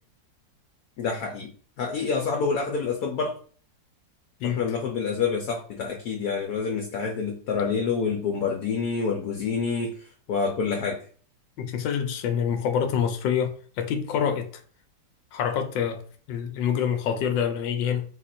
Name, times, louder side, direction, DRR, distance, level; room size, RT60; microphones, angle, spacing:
voice 1, 1.0-1.5 1.8-3.4 4.4-11.0, left 5 dB, 65° left, 1.1 m, -27 dB
voice 2, 11.6-14.5 15.3-18.0, left 8 dB, 90° left, 1.4 m, -26 dB
4.0 x 2.5 x 4.2 m
omnidirectional pair, 2.0 m